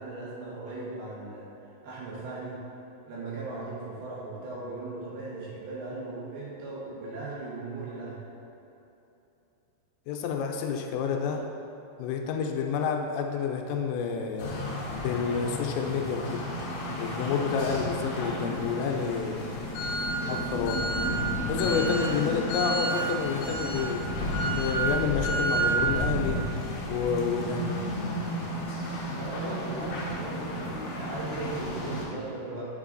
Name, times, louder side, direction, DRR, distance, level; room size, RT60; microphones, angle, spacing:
voice 1, 0.0-1.5 1.8-2.6 3.1-8.3 29.1-32.6, right 2 dB, 75° right, -7 dB, 2.5 m, -38 dB
voice 2, 10.1-11.5 12.0-14.5 14.9-16.5 17.0-19.4 19.8-19.9 20.3-20.8 21.5-26.4 26.9-27.7, left 6 dB, 85° left, 3 dB, 2.8 m, -29 dB
sound 1, 14.4-32.0, right 1 dB, 70° left, 1.8 m, -31 dB
6.5 x 6.0 x 2.5 m, 2.9 s
omnidirectional pair, 5.1 m